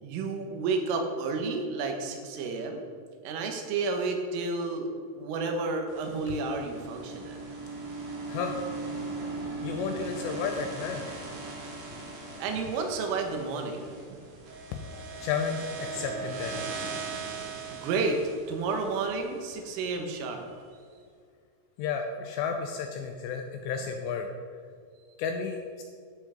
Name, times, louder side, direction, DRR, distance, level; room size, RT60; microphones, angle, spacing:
voice 1, 0.0-2.8 3.2-7.4 12.4-14.3 17.7-18.2 18.5-20.5, right 4 dB, 85° right, 4 dB, 3.9 m, -31 dB
sound 1, 5.9-20.1, right 3 dB, 55° right, 3.6 m, -39 dB
voice 2, 8.2-8.7 9.6-11.2 12.2-12.4 14.7-16.6 21.8-24.3 25.2-25.8, left 6 dB, 80° left, 4 dB, 2.6 m, -33 dB
12.5 x 8.3 x 5.0 m, 2.1 s
omnidirectional pair, 5.6 m